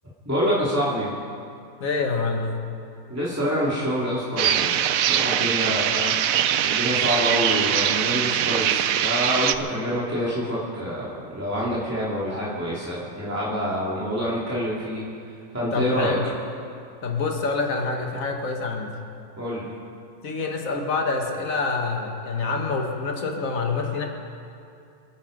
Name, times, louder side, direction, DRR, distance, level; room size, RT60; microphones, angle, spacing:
voice 1, 0.2-1.1 3.1-6.2 6.6-15.0 15.5-16.2 19.4-19.7, equal, 10° right, -8 dB, 2.6 m, -26 dB
voice 2, 1.8-2.5 9.7-9.8 15.7-16.3 17.0-18.9 20.2-24.1, left 4 dB, 65° left, 2 dB, 2.0 m, -26 dB
sound 1, 4.4-9.6, right 10 dB, 70° right, 1.0 m, -22 dB
28.5 x 9.4 x 5.2 m, 2.5 s
omnidirectional pair, 1.6 m